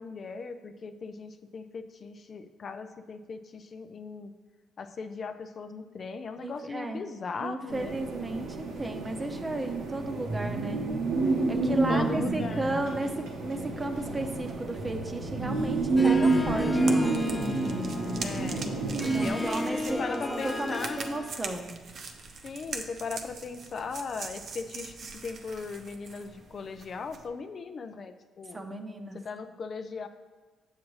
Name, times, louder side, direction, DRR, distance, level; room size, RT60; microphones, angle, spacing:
voice 1, 0.0-4.3 4.8-8.0 11.9-12.7 18.2-18.6 19.1-21.0 22.4-28.6 29.1-30.1, left 5 dB, 50° left, 8 dB, 0.4 m, -38 dB
voice 2, 6.4-7.0 7.4-10.8 11.2-17.1 19.1-21.7 28.5-29.2, right 2 dB, 25° right, 5 dB, 0.8 m, -34 dB
sound 1, 7.7-19.3, right 3 dB, 85° right, 1.1 m, -29 dB
Harp, 16.0-21.4, left 2 dB, 10° left, 0.9 m, -34 dB
sound 2, 16.3-27.3, right 4 dB, 55° right, 0.7 m, -42 dB
7.3 x 7.3 x 3.2 m, 1.3 s
cardioid pair, 90°, 0 cm